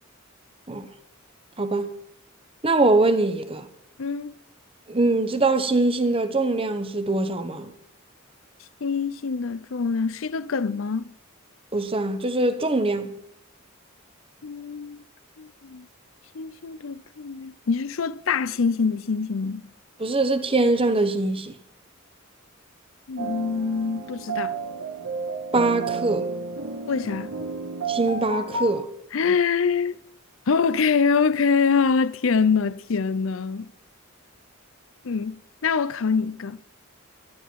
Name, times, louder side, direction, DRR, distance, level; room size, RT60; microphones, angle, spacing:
voice 1, 1.6-1.9 2.6-3.7 4.9-7.7 11.7-13.1 20.0-21.5 25.5-26.3 27.9-28.9, right 2 dB, 25° right, 1.1 m, -22 dB
voice 2, 4.0-4.3 8.8-11.1 14.4-15.0 15.4-15.9 16.3-19.6 23.1-24.6 26.9-27.3 29.1-30.0 30.5-33.7 35.0-36.6, left 5 dB, 65° left, 0.6 m, -24 dB
sound 1, 23.2-28.7, right 4 dB, 80° right, 2.0 m, -31 dB
17.0 x 12.0 x 4.7 m
head